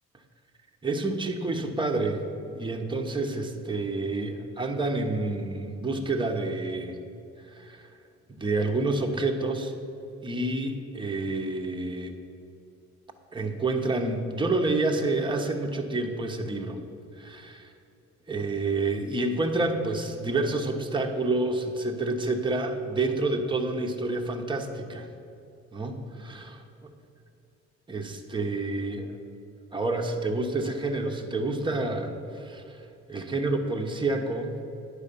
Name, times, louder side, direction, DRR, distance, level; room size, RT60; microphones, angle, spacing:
voice 1, 0.8-7.0 7.4-7.9 8.3-9.7 10.2-12.2 13.3-16.8 17.2-17.7 18.3-25.1 25.7-26.6 27.9-29.1 29.7-34.6, right 2 dB, 15° right, 3 dB, 0.9 m, -29 dB
9.9 x 4.8 x 6.9 m, 2.6 s
cardioid pair, 90°, 30 cm